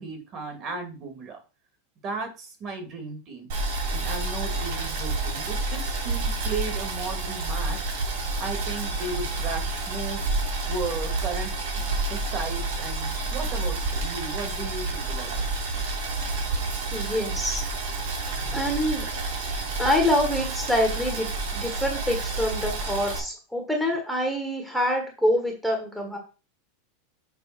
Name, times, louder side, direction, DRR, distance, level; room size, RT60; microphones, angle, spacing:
voice 1, 0.0-1.4 2.0-3.5 3.9-7.9 8.4-15.5, right 3 dB, 35° right, 5 dB, 2.2 m, -35 dB
Boiling, 3.5-23.2, right 3 dB, 70° right, 2.8 m, -29 dB
voice 2, 16.9-17.6 18.5-19.0 19.8-26.2, left 1 dB, ahead, 0 dB, 1.4 m, -26 dB
7.0 x 3.6 x 6.0 m, 0.34 s
supercardioid pair, 150°, 0 cm